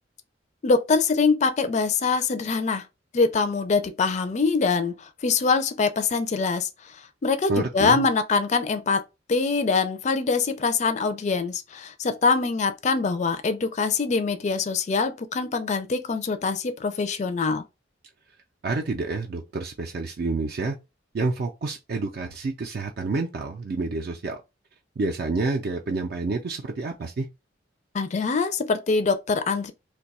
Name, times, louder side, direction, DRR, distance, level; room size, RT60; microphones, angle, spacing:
voice 1, 0.6-2.9 3.1-6.7 7.2-9.0 9.3-17.6 27.9-29.7, left 4 dB, 40° left, 0.4 m, -24 dB
voice 2, 7.5-8.1 18.6-20.8 21.1-24.4 25.0-27.3, right 3 dB, 55° right, 0.4 m, -28 dB
2.6 x 2.2 x 4.1 m
head